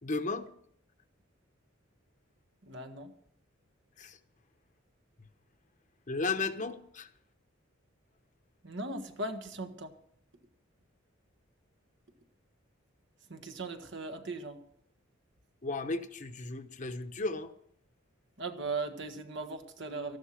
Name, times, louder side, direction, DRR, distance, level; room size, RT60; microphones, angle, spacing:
voice 1, 0.0-0.5 4.0-4.2 6.1-7.1 15.6-17.5, left 3 dB, 40° left, 1.0 m, -34 dB
voice 2, 2.6-3.1 8.6-9.9 13.3-14.6 18.4-20.2, right 2 dB, 60° right, 1.5 m, -38 dB
14.0 x 11.5 x 5.9 m
head